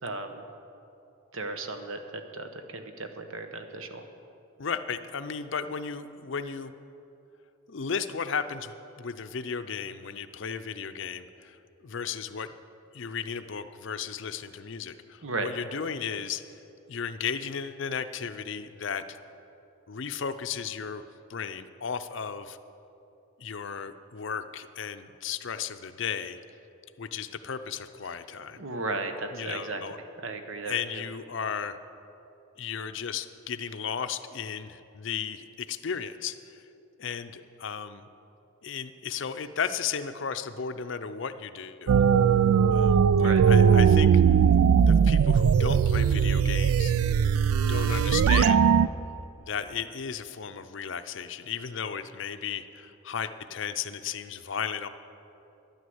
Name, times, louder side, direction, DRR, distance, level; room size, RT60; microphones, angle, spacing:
voice 1, 0.0-0.4 1.3-4.1 15.2-15.5 28.6-31.0 43.2-43.4, right 3 dB, 70° right, 7 dB, 1.0 m, -35 dB
voice 2, 4.6-6.7 7.7-11.6 11.8-12.5 12.9-16.4 16.9-19.2 19.9-21.0 21.3-22.6 23.4-26.4 27.0-28.6 29.3-30.0 30.6-31.8 32.6-36.6 37.0-38.1 38.6-41.9 42.7-44.1 44.9-46.9 47.6-48.7 49.4-54.9, left 6 dB, 60° left, 10 dB, 0.5 m, -35 dB
sound 1, 41.9-48.9, right 7 dB, 90° right, 0.3 m, -20 dB
11.0 x 9.5 x 7.8 m, 2.8 s
head